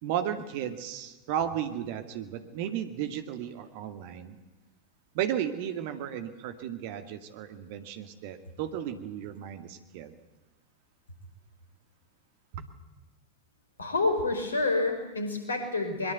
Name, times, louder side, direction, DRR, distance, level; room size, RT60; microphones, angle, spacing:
voice 1, 0.0-4.4 5.1-10.2 12.5-12.7, right 10 dB, 50° right, 8 dB, 2.1 m, -34 dB
voice 2, 13.8-16.1, left 3 dB, 75° left, 7 dB, 4.8 m, -28 dB
23.0 x 22.0 x 8.2 m, 1.2 s
figure-of-eight pair, 90°, 0 cm